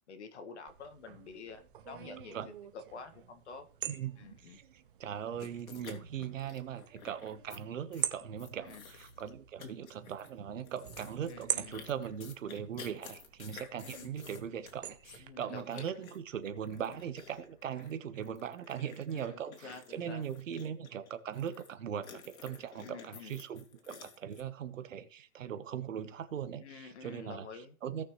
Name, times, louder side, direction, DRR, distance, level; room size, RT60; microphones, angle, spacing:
voice 1, 0.1-2.4 2.7-3.7 4.2-4.6 8.6-8.8 11.3-11.7 13.8-14.1 15.2-15.9 19.1-20.2 22.8-23.3 26.6-27.7, left 5 dB, 55° left, 1.9 m, -48 dB
sound 1, 0.7-15.3, right 10 dB, 40° right, 0.9 m, -45 dB
voice 2, 3.9-28.1, right 8 dB, 65° right, 1.3 m, -40 dB
sound 2, 5.4-7.6 7.9-8.1 8.4-9.3 9.6-10.3 10.6-21.7 22.0-24.4, left 5 dB, 75° left, 2.6 m, -52 dB
Keyboard (musical), 6.0-6.7 8.1-9.7 10.9-18.0, left 1 dB, 40° left, 2.9 m, -65 dB
17.0 x 6.0 x 3.2 m
hypercardioid pair, 165°, 41 cm